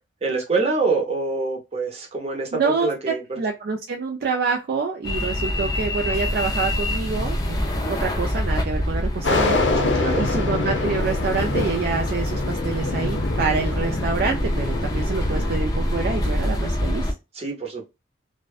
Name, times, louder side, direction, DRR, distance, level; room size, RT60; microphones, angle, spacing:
voice 1, 0.2-3.2 9.8-10.2 17.4-17.9, right 3 dB, 35° right, 0.7 m, -25 dB
voice 2, 2.5-9.6 10.2-17.1, right 4 dB, 55° right, 0.3 m, -27 dB
sound 1, 5.0-17.1, left 1 dB, 20° left, 0.4 m, -26 dB
sound 2, 9.2-15.5, left 3 dB, 70° left, 0.5 m, -26 dB
2.5 x 2.1 x 2.3 m
head